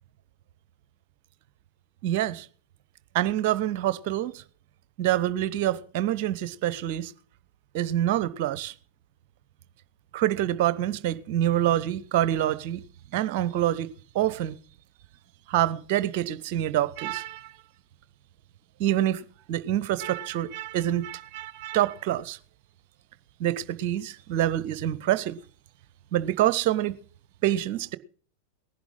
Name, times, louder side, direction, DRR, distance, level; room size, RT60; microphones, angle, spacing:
voice 1, 2.0-2.5 3.1-4.4 5.0-7.1 7.7-8.7 10.1-12.8 13.1-13.9 14.1-14.6 15.5-17.5 18.8-22.4 23.4-25.4 26.1-26.9 27.4-28.0, right 12 dB, 50° right, 0.9 m, -26 dB
19.5 x 11.0 x 3.8 m
figure-of-eight pair, 90°, 0 cm